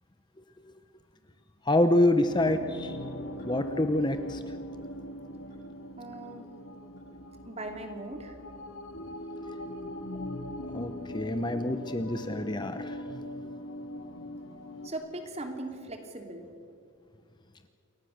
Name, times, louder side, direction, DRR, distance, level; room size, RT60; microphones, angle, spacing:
voice 1, 1.7-3.0 3.4-4.4 10.7-13.0, left 1 dB, 20° left, 8 dB, 0.8 m, -26 dB
sound 1, 2.3-14.9, left 1 dB, 70° left, 2.6 m, -40 dB
sound 2, 3.4-3.7 4.1-4.4 4.8-5.1 5.5-5.8 6.2-6.3 7.0-7.1 7.7-7.8 8.5-8.6 9.2-9.4, left 2 dB, 40° left, 7.8 m, -57 dB
voice 2, 6.0-6.5 7.4-8.4 14.8-16.5, right 2 dB, 30° right, 4 dB, 3.0 m, -39 dB
28.5 x 23.0 x 6.6 m, 2.3 s
head